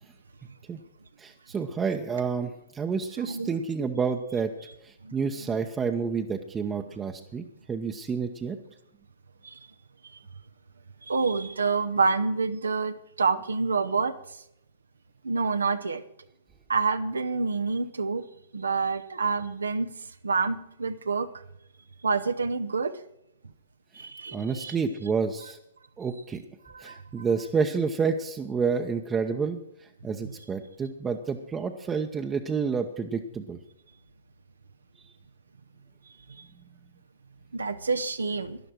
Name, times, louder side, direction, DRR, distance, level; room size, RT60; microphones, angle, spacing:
voice 1, 1.2-4.5 4.8-8.6 24.3-25.6 26.0-26.4 26.8-29.6 30.0-33.6, right 5 dB, 15° right, 4 dB, 0.9 m, -29 dB
voice 2, 3.2-3.5 5.0-5.5 9.4-9.6 11.0-14.2 15.2-16.0 16.7-18.3 18.5-19.9 20.2-21.3 22.0-23.0 23.9-24.7 26.7-27.3 30.2-30.3 37.5-38.6, right 4 dB, 80° right, 9 dB, 0.8 m, -28 dB
12.0 x 11.0 x 6.2 m, 0.75 s
figure-of-eight pair, 115°, 0 cm